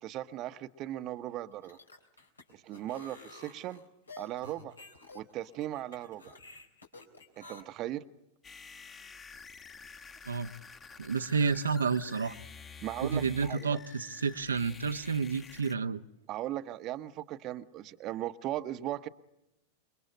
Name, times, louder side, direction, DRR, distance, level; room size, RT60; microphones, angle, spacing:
voice 1, 0.0-1.8 2.5-3.8 4.2-4.8 5.1-6.4 7.4-8.0 12.8-13.8 16.3-19.1, right 13 dB, 35° right, 11 dB, 1.1 m, -38 dB
sound 1, 1.5-7.6, left 3 dB, 80° left, 3.8 m, -51 dB
sound 2, 8.4-15.7, left 5 dB, 25° left, 1.7 m, -50 dB
voice 2, 11.0-12.3 13.0-16.0, right 5 dB, 75° right, 6 dB, 1.0 m, -30 dB
28.5 x 23.0 x 8.9 m, 0.87 s
figure-of-eight pair, 90°, 0 cm